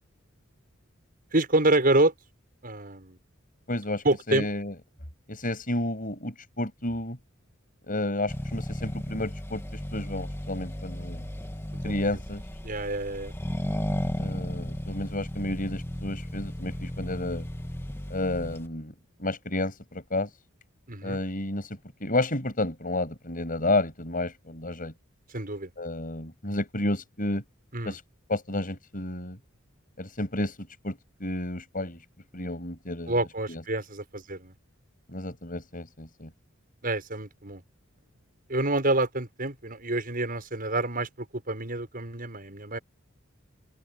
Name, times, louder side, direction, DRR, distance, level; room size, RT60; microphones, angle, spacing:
voice 1, 1.3-2.1 2.6-3.2 4.0-4.5 12.6-13.3 20.9-21.2 25.3-25.7 27.7-28.0 33.1-34.5 36.8-37.6 38.5-42.8, right 2 dB, 45° right, 6.5 m, -27 dB
voice 2, 3.7-4.7 5.3-7.2 7.8-11.3 11.8-12.4 14.2-17.5 18.1-18.9 19.2-20.3 21.0-24.9 25.8-27.4 27.8-28.0 28.3-29.4 30.0-32.0 32.3-33.2 33.5-33.6 35.1-36.3, left 1 dB, 45° left, 7.2 m, -31 dB
Accelerating revving vroom, 8.3-18.7, equal, 10° left, 1.9 m, -34 dB
open air
head